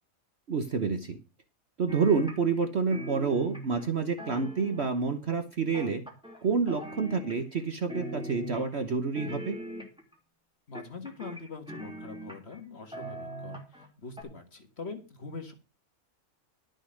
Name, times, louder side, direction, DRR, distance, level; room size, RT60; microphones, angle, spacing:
voice 1, 0.5-1.2 1.8-6.0 6.4-9.6, right 5 dB, 50° right, 7 dB, 1.3 m, -28 dB
sound 1, 1.9-2.7 2.9-5.1 5.7-6.4 6.7-7.6 7.9-8.8 9.1-10.1 10.7-12.6 12.9-13.9 14.2-14.3, right 1 dB, 5° right, 2.6 m, -40 dB
voice 2, 10.7-15.5, left 4 dB, 50° left, 6 dB, 1.9 m, -43 dB
12.0 x 6.5 x 6.4 m, 0.31 s
omnidirectional pair, 1.5 m